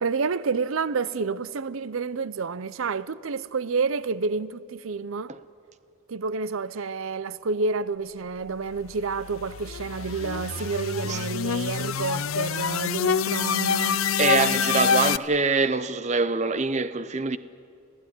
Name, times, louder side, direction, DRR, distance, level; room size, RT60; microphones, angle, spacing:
voice 1, 0.0-5.3 6.1-14.6, right 4 dB, 80° right, 0.6 m, -29 dB
sound 1, 8.8-15.2, left 7 dB, 80° left, 0.5 m, -26 dB
voice 2, 14.2-17.4, right 4 dB, 35° right, 0.6 m, -24 dB
27.5 x 16.0 x 9.9 m
head